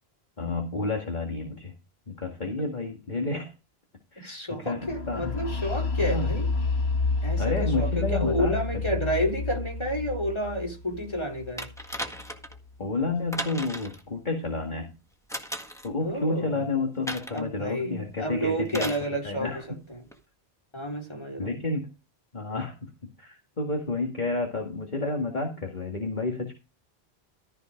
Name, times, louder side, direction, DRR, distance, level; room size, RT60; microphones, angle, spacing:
voice 1, 0.4-1.7 2.1-3.5 4.1-4.4 4.6-4.8 5.1-5.3 6.0-6.3 7.4-8.6 12.8-14.9 15.8-18.9 19.2-19.6 21.4-21.9 22.3-22.9 23.2-26.5, left 3 dB, 45° left, 2.1 m, -30 dB
voice 2, 4.2-6.5 7.2-11.7 16.0-16.7 17.3-19.5 19.9-20.0 20.7-21.6, equal, 25° left, 3.8 m, -30 dB
sound 1, 4.8-12.6, left 3 dB, 80° left, 2.0 m, -30 dB
sound 2, 11.6-12.6 13.3-14.0 15.3-15.9 17.1-17.5 18.7-19.1 20.1-20.2, equal, 5° left, 1.6 m, -35 dB
14.5 x 5.1 x 5.1 m
omnidirectional pair, 1.1 m